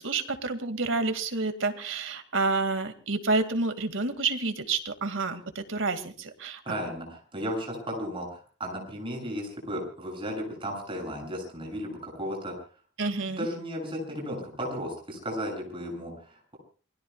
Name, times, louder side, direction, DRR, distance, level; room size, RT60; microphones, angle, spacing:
voice 1, 0.0-6.6 13.0-13.5, right 3 dB, 85° right, 8 dB, 2.2 m, -29 dB
voice 2, 6.6-12.5 13.4-16.6, equal, 30° right, 1 dB, 7.6 m, -34 dB
28.5 x 21.0 x 2.4 m, 0.39 s
head